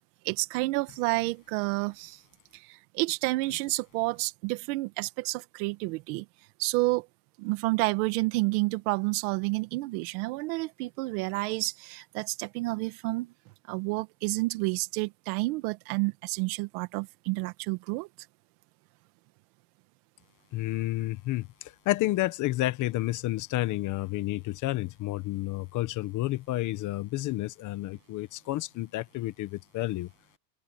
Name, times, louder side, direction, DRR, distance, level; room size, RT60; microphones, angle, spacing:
voice 1, 0.3-2.2 2.5-6.3 6.6-7.1 7.4-13.3 13.7-18.1, right 23 dB, 60° right, 2.0 m, -30 dB
voice 2, 20.5-30.1, left 17 dB, 40° left, 1.2 m, -30 dB
open air
supercardioid pair, 155°, 49 cm